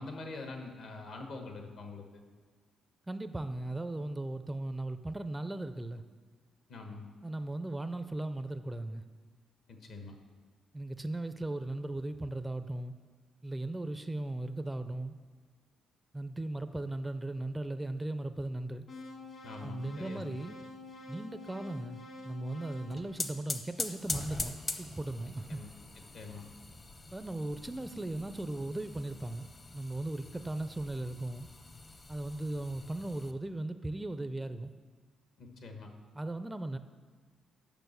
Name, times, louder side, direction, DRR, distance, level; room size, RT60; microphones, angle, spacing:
voice 1, 0.0-2.2 6.7-7.1 9.7-10.1 19.4-20.2 25.5-25.7 26.1-26.5 35.4-35.9, left 3 dB, 70° left, 4 dB, 1.2 m, -44 dB
voice 2, 3.1-6.0 7.2-9.0 10.7-12.9 13.4-15.1 16.1-18.9 19.6-20.6 21.1-25.6 27.1-31.5 32.1-34.8 36.1-36.8, right 2 dB, 10° right, 11 dB, 0.4 m, -37 dB
sound 1, 18.9-24.0, left 2 dB, 50° left, 1.4 m, -49 dB
sound 2, 22.7-33.3, left 3 dB, 30° left, 0.7 m, -43 dB
6.9 x 5.9 x 6.7 m, 1.5 s
cardioid pair, 90°, 0 cm